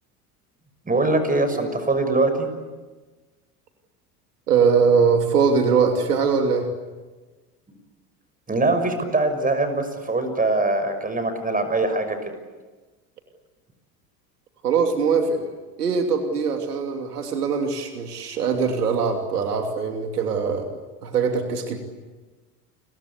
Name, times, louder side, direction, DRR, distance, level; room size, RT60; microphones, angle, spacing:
voice 1, 0.9-2.5 8.5-12.3, right 2 dB, 20° right, 9 dB, 6.1 m, -22 dB
voice 2, 4.5-6.7 14.6-15.5 15.8-20.7 21.0-21.8, right 5 dB, 85° right, 5 dB, 2.9 m, -21 dB
30.0 x 23.0 x 8.4 m, 1.3 s
hypercardioid pair, 80°, 46 cm